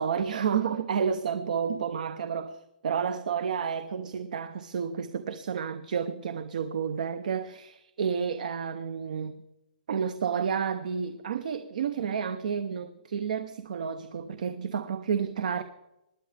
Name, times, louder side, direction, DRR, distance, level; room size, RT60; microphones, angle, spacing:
voice 1, 0.0-9.4 9.9-15.6, right 7 dB, 55° right, 0.6 m, -30 dB
20.0 x 10.5 x 3.3 m
hypercardioid pair, 175°, 5 cm